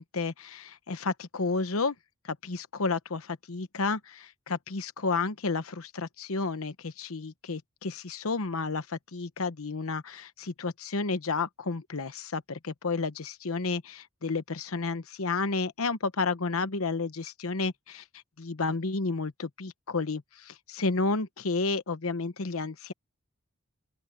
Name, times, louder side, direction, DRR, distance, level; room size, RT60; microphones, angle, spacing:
voice 1, 0.0-1.9 2.2-18.0 18.4-22.9, left 3 dB, 80° left, 1.0 m, -31 dB
open air
head